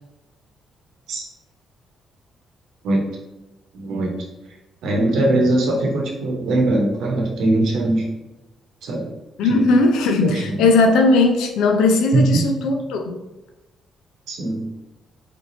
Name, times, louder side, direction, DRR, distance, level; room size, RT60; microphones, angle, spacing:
voice 1, 3.7-4.1 4.8-8.0 8.8-9.1 9.4-9.7 10.2-10.6 12.1-12.5 14.3-14.7, right 2 dB, 80° right, 0 dB, 0.9 m, -21 dB
voice 2, 9.4-13.2, left 3 dB, 90° left, 4 dB, 0.5 m, -17 dB
3.4 x 3.2 x 2.6 m, 1.0 s
cardioid pair, 90°, 0 cm